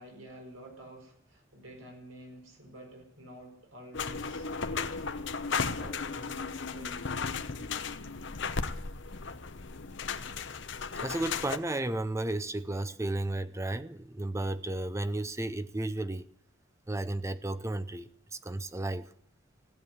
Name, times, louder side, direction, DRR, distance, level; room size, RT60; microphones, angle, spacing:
voice 1, 0.0-4.5 4.8-5.0 5.7-7.0, right 1 dB, 85° right, 4.9 m, -50 dB
sound 1, 3.9-11.6, left 5 dB, 65° left, 0.9 m, -35 dB
voice 2, 11.0-16.2 16.9-19.1, right 2 dB, 15° right, 0.6 m, -33 dB
16.0 x 9.0 x 9.9 m
head